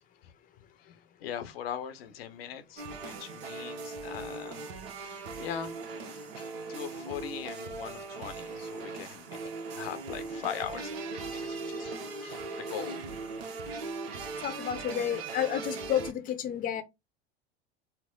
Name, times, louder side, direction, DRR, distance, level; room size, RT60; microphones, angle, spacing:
voice 1, 1.2-4.6 4.9-5.7 6.4-9.4 9.7-13.0, left 9 dB, 70° left, 0.7 m, -40 dB
sound 1, 2.8-16.1, right 4 dB, 70° right, 0.9 m, -39 dB
voice 2, 14.4-16.8, left 10 dB, 25° left, 0.6 m, -31 dB
4.3 x 2.0 x 3.7 m
hypercardioid pair, 85°, 31 cm